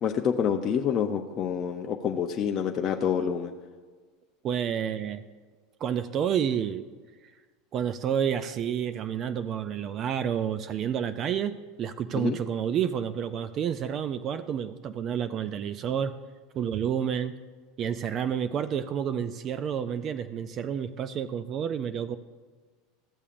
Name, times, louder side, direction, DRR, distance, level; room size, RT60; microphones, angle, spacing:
voice 1, 0.0-3.5 12.1-12.4, left 7 dB, 35° left, 2 dB, 0.5 m, -27 dB
voice 2, 4.4-5.2 5.8-6.8 7.7-16.2 16.5-17.4 17.8-22.2, right 8 dB, 40° right, 12 dB, 0.3 m, -29 dB
13.5 x 6.8 x 2.5 m, 1.4 s
supercardioid pair, 125°, 0 cm